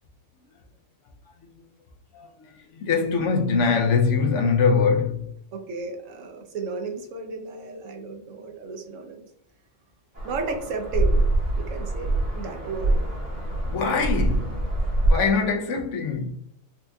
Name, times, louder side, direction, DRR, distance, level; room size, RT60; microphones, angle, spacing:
voice 1, 2.1-5.2 13.7-14.5 15.1-16.3, left 5 dB, 70° left, 0.9 m, -23 dB
voice 2, 5.5-9.3 10.2-11.2 11.6-13.0, right 4 dB, 75° right, 1.0 m, -33 dB
sound 1, 10.1-15.1, right 1 dB, 50° right, 1.6 m, -24 dB
4.3 x 2.6 x 2.2 m
omnidirectional pair, 1.4 m